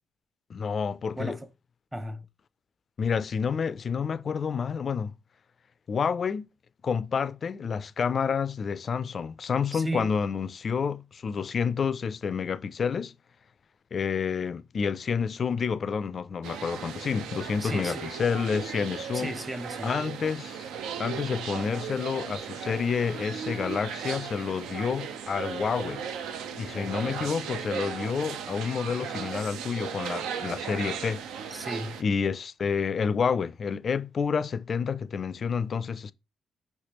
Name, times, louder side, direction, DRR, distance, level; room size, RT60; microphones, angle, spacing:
voice 1, 0.5-1.4 3.0-5.1 5.9-6.5 6.8-13.1 13.9-19.3 19.8-20.6 21.0-26.0 26.6-31.2 32.0-36.1, left 6 dB, 45° left, 0.3 m, -29 dB
voice 2, 1.2-1.5 1.9-2.3 9.7-10.2 17.6-18.0 19.1-19.9 26.7-27.3 31.5-32.0, right 1 dB, 15° right, 0.7 m, -35 dB
sound 1, 16.4-32.0, right 7 dB, 90° right, 0.5 m, -36 dB
5.6 x 3.2 x 2.9 m
cardioid pair, 90°, 0 cm